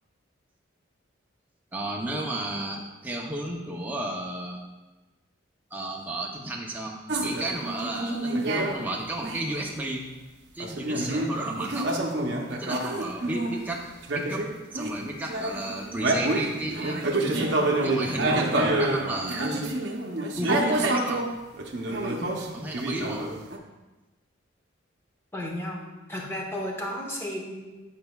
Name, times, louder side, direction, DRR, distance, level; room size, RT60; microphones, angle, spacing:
voice 1, 1.7-4.6 5.7-10.1 10.5-11.9 12.5-13.9 14.1-17.0 17.8-19.7 20.4-21.2 22.5-23.3, right 1 dB, 10° right, -1 dB, 0.6 m, -33 dB
sound 1, 7.1-8.8 9.2-9.6 10.6-13.6 14.0-15.0 15.3-21.3 21.5-23.6, right 2 dB, 55° right, 0.7 m, -27 dB
voice 2, 22.1-22.5 25.3-25.8 26.1-27.8, left 1 dB, 10° left, -1 dB, 0.9 m, -34 dB
10.0 x 5.3 x 2.3 m, 1.1 s
head